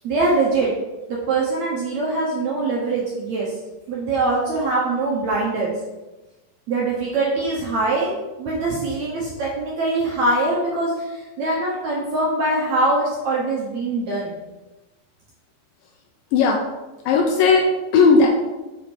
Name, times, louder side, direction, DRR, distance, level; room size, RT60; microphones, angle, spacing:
voice 1, 0.0-0.7 1.1-3.5 3.9-5.7 6.7-8.1 8.4-14.4, right 2 dB, 70° right, -4 dB, 1.8 m, -23 dB
voice 2, 16.3-16.6 17.1-18.3, left 4 dB, 80° left, 1 dB, 2.1 m, -16 dB
6.2 x 5.0 x 4.4 m, 1.1 s
omnidirectional pair, 4.4 m